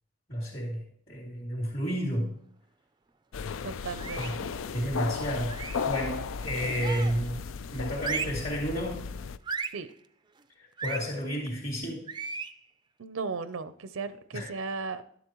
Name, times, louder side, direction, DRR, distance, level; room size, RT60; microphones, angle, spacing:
voice 1, 0.3-2.3 4.2-4.3 4.7-5.5 5.8-7.4 7.7-9.0 10.8-12.0 14.3-14.5, equal, 45° left, -8 dB, 3.0 m, -31 dB
sound 1, 3.3-9.4, left 5 dB, 65° left, 0.4 m, -35 dB
voice 2, 3.6-4.5 9.7-9.9 13.0-15.0, right 4 dB, 75° right, 12 dB, 0.6 m, -36 dB
sound 2, 4.0-4.5 5.5-5.9 6.8-7.3 8.0-8.5 9.5-9.9 10.8-11.1 12.1-12.6, right 5 dB, 20° right, 0.4 m, -35 dB
12.5 x 11.5 x 3.0 m, 0.66 s
head